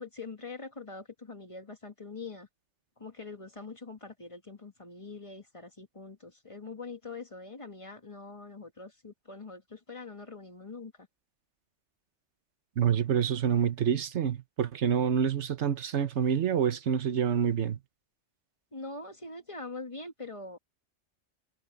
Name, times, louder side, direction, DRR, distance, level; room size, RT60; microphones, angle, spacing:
voice 1, 0.0-2.5 3.0-11.1 18.7-20.6, left 3 dB, 30° left, 1.5 m, -43 dB
voice 2, 12.8-17.8, right 8 dB, 80° right, 1.3 m, -27 dB
omnidirectional pair, 1.2 m